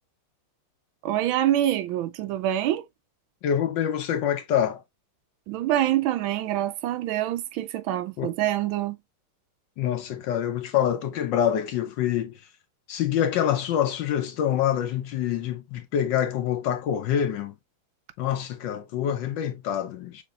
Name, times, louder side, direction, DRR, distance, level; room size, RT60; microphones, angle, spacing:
voice 1, 1.0-2.8 5.5-9.0, right 12 dB, 75° right, 1.3 m, -25 dB
voice 2, 3.4-4.8 8.2-8.3 9.8-12.4 12.9-17.5 18.2-20.2, left 10 dB, 70° left, 1.2 m, -26 dB
5.9 x 3.4 x 2.3 m
omnidirectional pair, 2.3 m